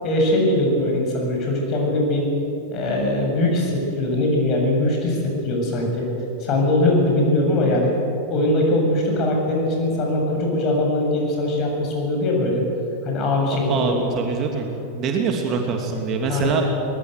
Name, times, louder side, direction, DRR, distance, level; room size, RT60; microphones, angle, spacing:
voice 1, 0.0-2.3 2.7-6.1 6.4-7.9 8.3-12.6 13.0-14.1 16.3-16.6, left 1 dB, 35° left, 0 dB, 7.5 m, -21 dB
voice 2, 13.5-14.7 14.9-16.6, right 5 dB, 30° right, 2 dB, 2.8 m, -24 dB
23.5 x 20.0 x 8.2 m, 2.8 s
figure-of-eight pair, 90°, 0 cm